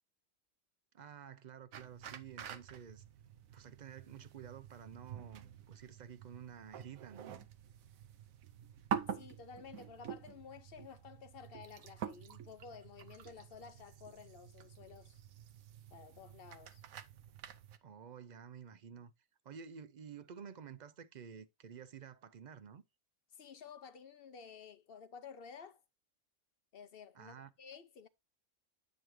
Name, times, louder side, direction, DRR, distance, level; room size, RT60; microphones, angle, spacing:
voice 1, 0.9-3.0 3.5-7.4 17.8-19.1 19.4-22.8 27.1-27.5, right 7 dB, 55° right, 0.5 m, -51 dB
sound 1, 1.7-17.8, right 8 dB, 90° right, 1.2 m, -47 dB
voice 2, 9.1-15.2 15.9-16.8 23.3-25.8 26.7-28.1, left 6 dB, 55° left, 0.7 m, -53 dB
9.4 x 5.9 x 3.1 m
omnidirectional pair, 1.4 m